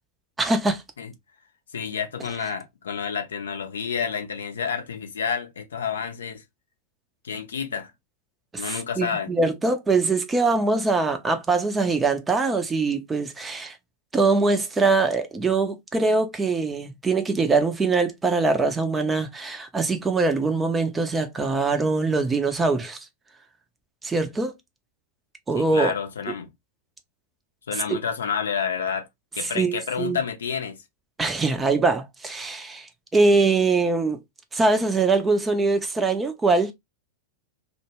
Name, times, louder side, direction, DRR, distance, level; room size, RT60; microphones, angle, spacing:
voice 1, 0.4-0.8 8.5-13.8 14.1-23.0 24.0-24.5 25.5-25.9 27.7-28.0 29.4-30.2 31.2-34.2 34.5-36.7, right 3 dB, 15° right, 0.5 m, -23 dB
voice 2, 1.7-6.4 7.2-7.9 8.6-9.3 25.5-26.5 27.7-29.1 29.3-30.8, left 6 dB, 65° left, 0.5 m, -29 dB
2.2 x 2.1 x 3.1 m
figure-of-eight pair, 90°, 0 cm